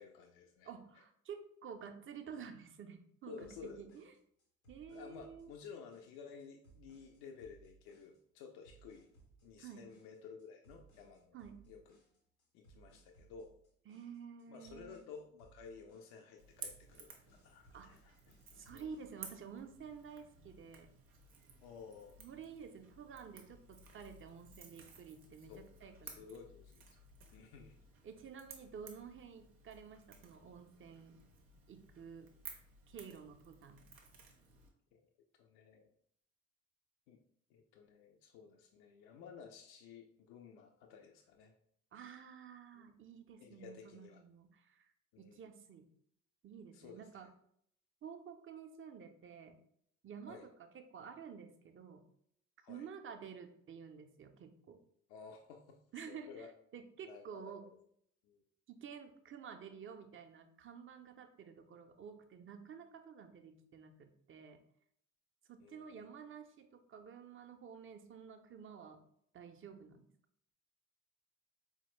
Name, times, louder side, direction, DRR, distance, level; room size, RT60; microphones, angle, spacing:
voice 1, 0.0-0.7 3.3-4.0 4.9-9.1 9.4-11.4 11.7-11.9 12.5-13.5 14.5-17.1 17.4-18.1 18.7-18.9 21.6-22.2 25.5-26.8 27.3-27.8 34.9-35.0 35.4-35.8 37.1-37.2 37.5-41.5 42.7-42.8 43.4-44.2 45.1-45.4 46.7-47.3 50.3-50.4 52.6-52.9 55.1-56.5 57.0-57.7 58.2-58.4 65.6-66.1, left 6 dB, 65° left, 3 dB, 0.5 m, -54 dB
voice 2, 0.6-4.1 4.7-5.5 9.6-9.9 11.3-11.6 13.9-15.1 17.7-18.0 18.5-20.9 22.2-26.3 28.0-31.2 31.7-32.3 32.9-33.8 41.9-45.9 46.4-47.3 48.0-49.6 50.0-50.4 50.7-52.0 52.7-54.8 55.9-57.7 58.7-64.6 65.5-69.0 69.3-70.1, right 7 dB, 30° right, 6 dB, 0.5 m, -51 dB
sound 1, 3.4-19.4, right 4 dB, 85° left, 0.8 m, -65 dB
Crackle / Crack, 16.4-34.7, right 4 dB, 85° right, 0.6 m, -56 dB
4.1 x 2.1 x 3.0 m, 0.68 s
figure-of-eight pair, 40°, 41 cm